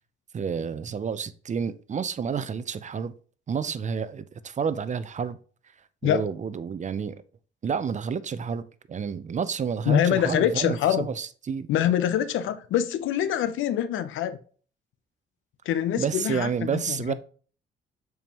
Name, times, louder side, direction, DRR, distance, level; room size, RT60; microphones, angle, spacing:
voice 1, 0.3-3.1 3.5-5.4 6.0-7.2 7.6-11.7 16.0-17.1, right 6 dB, 35° right, 0.5 m, -30 dB
voice 2, 9.9-11.1 11.7-14.4 15.7-17.1, left 10 dB, 80° left, 0.7 m, -25 dB
7.0 x 4.7 x 2.9 m
cardioid pair, 90°, 20 cm